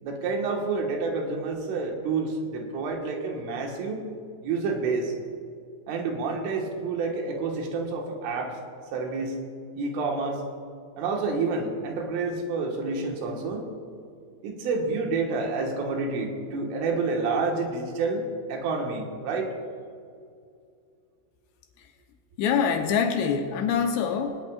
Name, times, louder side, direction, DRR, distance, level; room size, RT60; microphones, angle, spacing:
voice 1, 0.0-4.1 4.4-5.1 5.9-8.6 8.9-9.4 9.8-10.4 11.0-13.7 14.4-19.5, right 4 dB, 75° right, 1 dB, 4.0 m, -29 dB
voice 2, 22.4-24.4, left 6 dB, 75° left, 4 dB, 2.8 m, -25 dB
20.0 x 19.0 x 2.4 m, 2.3 s
omnidirectional pair, 5.7 m